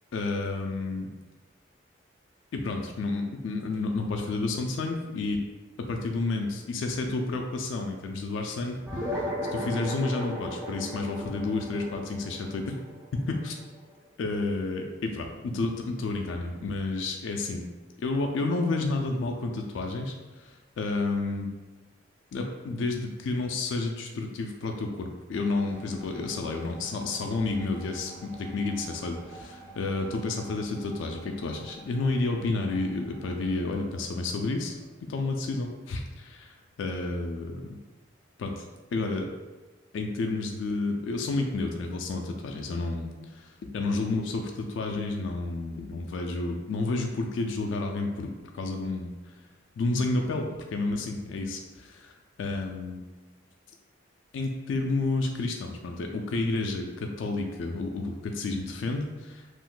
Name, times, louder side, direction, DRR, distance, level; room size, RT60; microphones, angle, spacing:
voice 1, 0.1-1.1 2.5-5.4 5.8-8.8 9.1-12.8 13.1-13.6 14.2-17.6 18.0-21.5 22.3-34.8 35.1-37.8 38.4-38.7 38.9-39.3 39.9-49.3 49.8-53.0 54.3-59.5, left 3 dB, 70° left, 2 dB, 0.3 m, -30 dB
sound 1, 8.9-13.7, equal, 15° right, 0.3 m, -35 dB
sound 2, 25.3-34.9, right 2 dB, 85° right, 0.6 m, -49 dB
2.5 x 2.1 x 3.7 m, 1.2 s
head